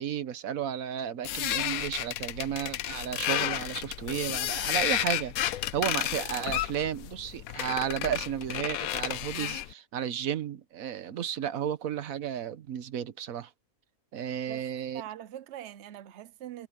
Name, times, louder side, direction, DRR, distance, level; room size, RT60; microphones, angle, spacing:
voice 1, 0.0-13.5 14.1-15.0, right 9 dB, 80° right, 1.4 m, -33 dB
sound 1, 1.2-9.7, left 12 dB, 90° left, 1.1 m, -32 dB
voice 2, 14.3-14.7 14.9-16.7, right 11 dB, 60° right, 1.0 m, -43 dB
omnidirectional pair, 1.4 m